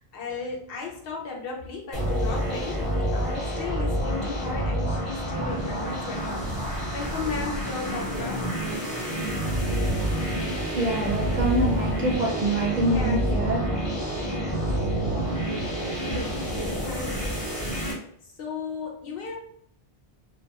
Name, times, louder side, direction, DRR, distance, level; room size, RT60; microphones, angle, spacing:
voice 1, 0.0-8.5 12.8-13.3 15.8-17.9 18.4-19.4, left 4 dB, 70° left, -1 dB, 0.8 m, -35 dB
sound 1, 1.9-17.9, right 1 dB, 35° left, 1.0 m, -28 dB
voice 2, 10.7-13.7 14.3-14.4 14.7-14.8, right 2 dB, 55° right, -1 dB, 0.6 m, -26 dB
2.3 x 2.3 x 2.8 m, 0.66 s
omnidirectional pair, 1.0 m